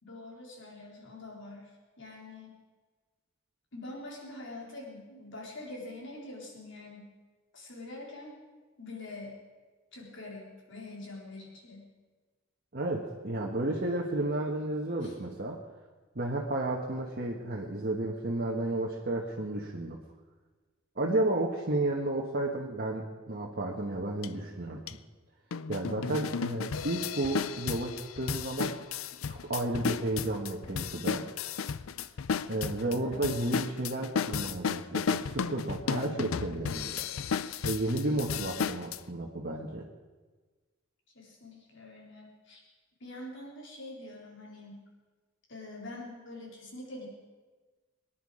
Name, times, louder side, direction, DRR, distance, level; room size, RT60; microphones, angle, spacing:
voice 1, 0.0-1.7 2.0-2.5 3.7-7.1 7.5-8.4 8.8-9.4 9.9-11.9 15.0-15.1 32.8-33.2 38.0-38.5 41.1-42.6 43.0-44.9 45.5-47.1, left 2 dB, 60° left, -2 dB, 4.1 m, -45 dB
voice 2, 12.7-15.6 16.1-20.0 21.0-24.8 25.7-28.8 29.3-31.3 32.5-37.1 37.6-39.8, right 2 dB, 45° right, -1 dB, 1.4 m, -32 dB
sound 1, 24.2-24.3 24.9-25.0 25.5-39.0, left 6 dB, 75° left, 0.5 m, -34 dB
22.5 x 10.5 x 5.0 m, 1.3 s
head